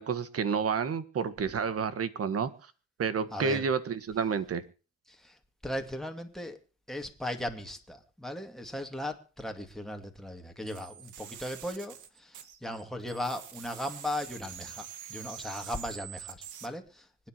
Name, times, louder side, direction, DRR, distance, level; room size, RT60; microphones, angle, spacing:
voice 1, 0.0-2.5 3.0-4.6, right 6 dB, 50° right, 13 dB, 1.6 m, -30 dB
voice 2, 3.3-3.6 5.1-5.4 5.6-6.6 6.9-17.1, left 1 dB, ahead, 4 dB, 2.3 m, -37 dB
sound 1, 10.7-12.8 13.1-16.7, right 9 dB, 80° right, 1.8 m, -45 dB
25.5 x 9.7 x 3.0 m, 0.35 s
cardioid pair, 90°, 30 cm